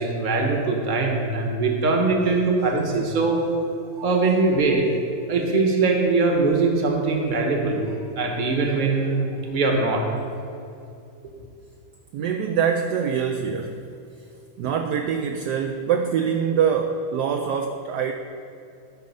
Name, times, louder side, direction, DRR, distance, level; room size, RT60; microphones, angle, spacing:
voice 1, 0.0-3.7 4.0-5.0 5.3-10.0, right 3 dB, 30° right, 1 dB, 1.0 m, -22 dB
voice 2, 12.1-13.8 14.6-18.1, right 7 dB, 75° right, 5 dB, 0.9 m, -24 dB
12.5 x 5.3 x 5.4 m, 2.6 s
omnidirectional pair, 2.2 m